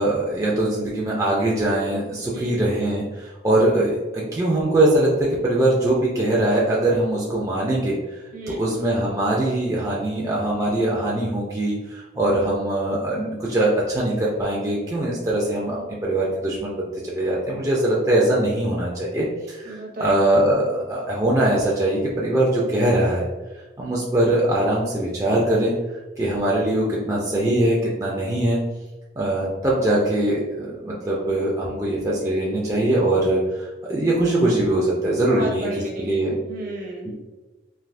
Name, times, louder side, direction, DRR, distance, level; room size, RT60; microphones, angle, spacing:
voice 1, 0.0-8.0 8.5-23.3 23.8-25.7 26.2-28.6 29.2-35.7 36.0-36.3, right 1 dB, 20° right, -5 dB, 0.4 m, -22 dB
voice 2, 2.3-2.6 8.3-8.6 15.7-15.9 19.6-20.3 35.1-37.1, right 1 dB, 50° right, -1 dB, 0.7 m, -33 dB
3.3 x 2.5 x 2.5 m, 1.2 s
head